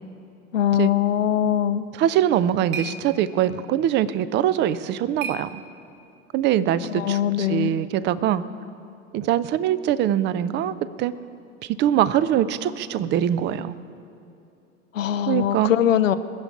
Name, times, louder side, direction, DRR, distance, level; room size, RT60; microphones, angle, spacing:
voice 1, 0.5-1.8 6.9-7.8 14.9-16.2, left 10 dB, 75° left, 12 dB, 0.7 m, -21 dB
voice 2, 1.9-5.6 6.3-8.4 9.1-11.1 11.6-13.8 15.3-15.7, right 11 dB, 30° right, 16 dB, 0.5 m, -23 dB
sound 1, 2.0-6.2, right 5 dB, 50° right, 1.3 m, -40 dB
20.0 x 7.0 x 8.8 m, 2.8 s
figure-of-eight pair, 85°, 39 cm